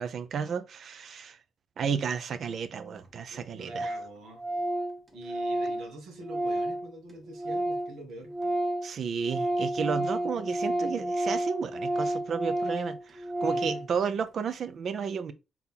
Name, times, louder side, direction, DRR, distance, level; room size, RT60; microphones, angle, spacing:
voice 1, 0.0-1.4 1.8-3.9 8.8-15.3, right 6 dB, 55° right, 0.5 m, -32 dB
Organ, 2.7-2.8 3.0-3.1 3.3-3.4 3.7-4.1 4.4-8.0 8.2-13.9, right 1 dB, 20° right, 1.3 m, -31 dB
voice 2, 3.3-4.4 5.1-8.3 13.4-13.9, right 2 dB, 80° right, 1.3 m, -45 dB
3.9 x 3.0 x 3.4 m
cardioid pair, 90°, 0 cm